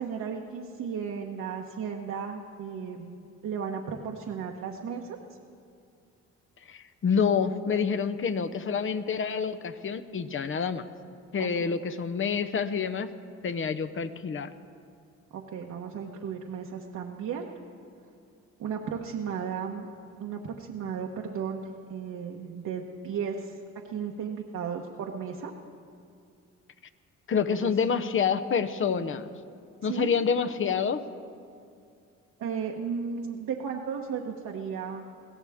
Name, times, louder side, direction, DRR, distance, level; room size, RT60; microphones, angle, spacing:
voice 1, 0.0-5.2 11.4-11.8 15.3-17.5 18.6-19.9 20.2-23.6 23.9-25.5 27.4-27.7 29.8-30.1 32.4-35.1, right 7 dB, 70° right, 0 dB, 1.2 m, -35 dB
voice 2, 6.7-10.9 11.3-13.1 13.4-14.5 27.3-29.2 29.8-31.0, left 6 dB, 40° left, 11 dB, 0.8 m, -27 dB
22.0 x 16.0 x 3.6 m, 2.4 s
cardioid pair, 90°, 30 cm